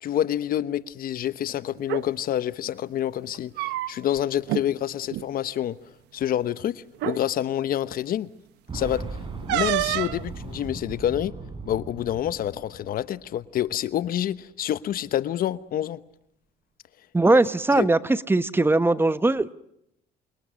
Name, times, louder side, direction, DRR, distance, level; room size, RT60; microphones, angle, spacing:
voice 1, 0.0-5.8 6.1-8.3 8.7-9.0 9.5-11.3 11.6-16.0 17.3-17.4 17.8-17.9, left 11 dB, 60° left, 1.1 m, -27 dB
sound 1, 1.8-2.0 3.3-4.2 4.5-4.6 5.0-5.3 6.2-6.3 6.9-7.2 9.5-10.2, right 17 dB, 90° right, 0.9 m, -27 dB
Boom, 8.7-13.4 13.7-13.8 14.9-15.0, right 4 dB, 30° right, 6.5 m, -38 dB
voice 2, 17.1-19.5, right 2 dB, 15° right, 1.0 m, -20 dB
28.5 x 27.0 x 6.4 m
cardioid pair, 110°, 17 cm